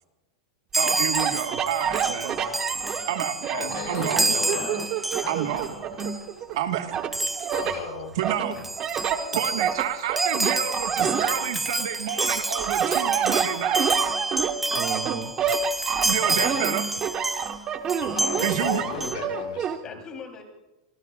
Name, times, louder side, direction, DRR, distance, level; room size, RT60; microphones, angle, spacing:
Chime, 0.7-5.7 6.0-6.2 7.1-7.7 8.3-8.4 8.6-17.6 17.9-19.1, right 2 dB, 5° right, 0.7 m, -29 dB
sound 1, 0.8-4.3 4.7-6.5 6.9-7.8 8.2-11.8 12.2-19.8, right 7 dB, 30° right, 1.2 m, -28 dB
voice 1, 0.8-2.4 3.1-4.4 5.3-5.7 6.5-7.0 8.2-8.6 9.3-13.9 16.0-16.8 18.4-18.8, right 11 dB, 75° right, 7 dB, 1.5 m, -29 dB
voice 2, 1.9-3.3 4.5-5.7 6.0-6.1 6.5-6.6 7.6-7.8 8.4-8.5 9.1-9.4 14.7-15.3 17.2-17.8, right 11 dB, 55° right, 2 dB, 2.2 m, -33 dB
voice 3, 3.5-4.8 7.5-8.1 16.2-16.6 17.9-20.0, left 5 dB, 75° left, -1 dB, 7.9 m, -34 dB
voice 4, 5.1-5.9 16.1-16.4 19.8-20.4, left 5 dB, 30° left, 3 dB, 3.5 m, -41 dB
25.5 x 21.5 x 2.4 m, 1.1 s
supercardioid pair, 125°, 3 cm